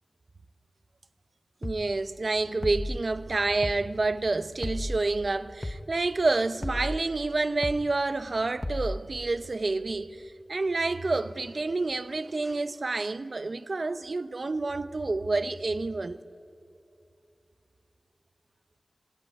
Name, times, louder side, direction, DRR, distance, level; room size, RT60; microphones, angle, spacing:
sound 1, 1.6-1.9 2.6-3.0 3.6-3.9 4.6-5.0 5.6-5.9 6.6-7.0 7.6-7.9 8.6-9.0, left 1 dB, 25° left, 1.1 m, -33 dB
voice 1, 1.6-16.2, right 3 dB, 55° right, 0.8 m, -28 dB
25.5 x 19.5 x 9.9 m
wide cardioid pair, 75°, 0 cm